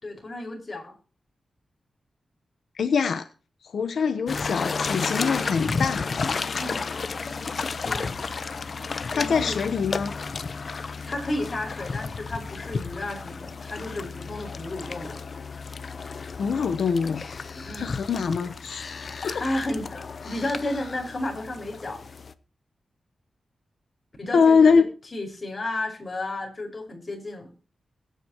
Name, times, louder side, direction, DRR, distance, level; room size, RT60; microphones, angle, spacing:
voice 1, 0.0-1.0 6.6-6.9 7.8-8.2 9.1-9.6 10.7-15.2 17.5-17.9 19.2-22.0 24.2-24.8 25.1-27.5, left 1 dB, 30° left, 5.2 m, -33 dB
voice 2, 2.8-3.3 3.6-6.0 9.2-10.1 16.4-17.2 17.8-18.9 19.2-19.4 24.3-24.9, left 5 dB, 80° left, 1.1 m, -23 dB
sound 1, 4.3-22.3, left 4 dB, 45° left, 0.9 m, -32 dB
21.5 x 9.4 x 3.0 m
wide cardioid pair, 135°, 0 cm